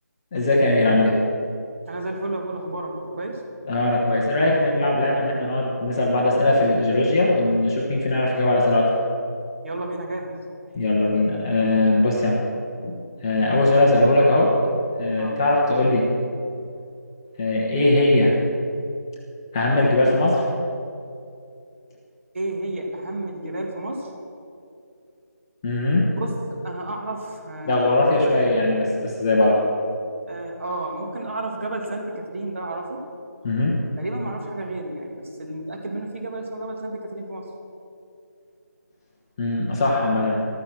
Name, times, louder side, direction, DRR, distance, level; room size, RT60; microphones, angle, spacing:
voice 1, 0.3-1.2 3.7-8.9 10.7-12.4 12.8-14.6 15.0-16.1 17.4-18.3 19.5-20.5 25.6-26.1 27.7-29.6 33.4-33.8 39.4-40.3, left 2 dB, 15° left, -3 dB, 1.0 m, -20 dB
voice 2, 1.9-3.4 9.6-10.4 15.2-15.4 22.3-24.1 26.0-28.6 30.3-33.0 34.0-37.5, right 1 dB, 45° right, 1 dB, 2.3 m, -31 dB
14.0 x 13.0 x 6.0 m, 2.6 s
figure-of-eight pair, 170°, 10 cm